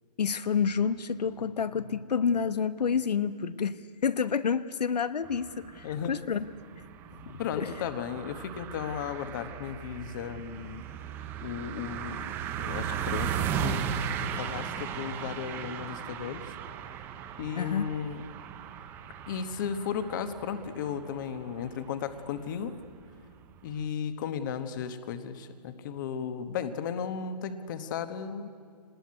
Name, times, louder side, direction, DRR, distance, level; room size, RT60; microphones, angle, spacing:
voice 1, 0.2-3.8 4.0-6.5 7.2-7.9 17.5-17.9, left 6 dB, 80° left, 13 dB, 1.0 m, -29 dB
sound 1, 5.2-23.8, right 8 dB, 10° right, 0.6 m, -37 dB
voice 2, 5.8-6.2 7.4-10.8 11.4-12.3 12.6-16.4 17.4-18.2 19.3-22.7 23.6-28.5, left 7 dB, 30° left, 10 dB, 1.1 m, -35 dB
23.5 x 19.5 x 9.5 m, 2.2 s
hypercardioid pair, 160°, 21 cm